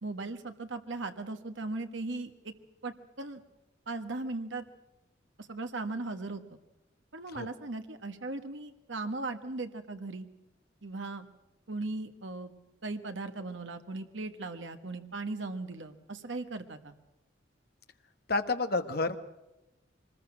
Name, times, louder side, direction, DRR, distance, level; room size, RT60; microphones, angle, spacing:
voice 1, 0.0-2.5 2.8-3.4 3.9-4.6 5.4-6.6 7.1-10.3 10.8-11.3 11.7-12.5 12.8-16.9, right 3 dB, 75° right, 7 dB, 1.5 m, -38 dB
voice 2, 18.3-19.2, left 3 dB, 55° left, 8 dB, 1.4 m, -29 dB
24.0 x 20.5 x 6.3 m, 0.96 s
head